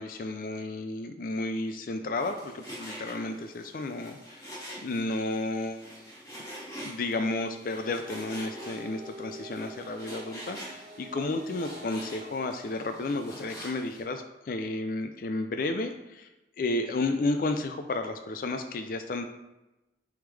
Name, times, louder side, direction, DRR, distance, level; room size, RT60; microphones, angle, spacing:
voice 1, 0.0-4.6 4.8-6.1 6.8-16.3 16.6-19.2, left 2 dB, 50° left, 6 dB, 0.4 m, -32 dB
Frying (food), 2.1-14.0, equal, 20° left, 2.1 m, -45 dB
sound 1, 7.6-12.6, right 1 dB, 45° right, 0.6 m, -47 dB
9.2 x 3.6 x 3.3 m, 1.0 s
head